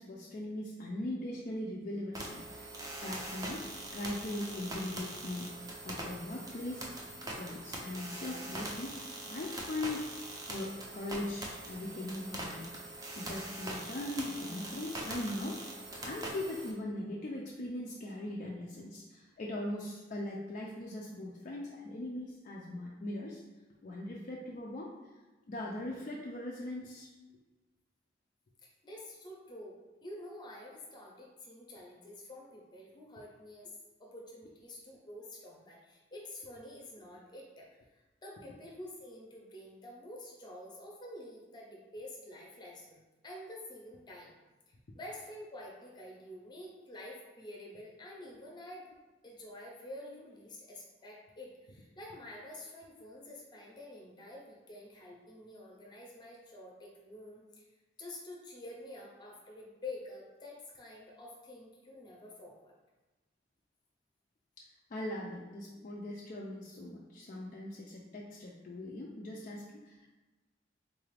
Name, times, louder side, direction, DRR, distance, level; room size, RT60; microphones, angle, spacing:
voice 1, 0.0-2.7 3.0-5.5 5.8-6.9 7.4-10.1 10.5-12.7 13.2-15.6 16.0-23.4 23.8-24.9 25.5-27.1 64.6-64.7 64.9-70.1, left 1 dB, 45° left, -3 dB, 0.4 m, -40 dB
sound 1, 2.1-16.7, right 1 dB, 20° right, 0.5 m, -43 dB
voice 2, 28.6-44.3 44.7-48.9 49.2-57.6 58.0-62.7, left 1 dB, 25° left, -2 dB, 0.7 m, -48 dB
3.9 x 2.4 x 3.2 m, 1.2 s
head